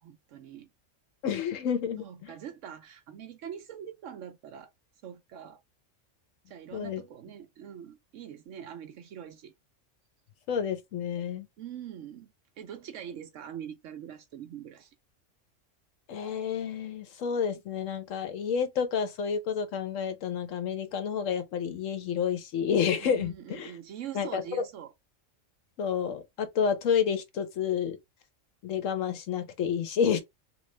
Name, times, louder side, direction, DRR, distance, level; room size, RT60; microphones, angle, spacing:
voice 1, 0.0-0.7 2.0-4.7 5.0-5.6 6.5-9.5 11.6-14.9 23.0-24.9, right 9 dB, 75° right, 1.0 m, -43 dB
voice 2, 1.2-2.3 6.7-7.0 10.5-11.5 16.1-23.7 24.1-24.6 25.8-28.0 28.6-30.2, left 7 dB, 80° left, 1.1 m, -29 dB
3.1 x 2.8 x 3.2 m
omnidirectional pair, 1.3 m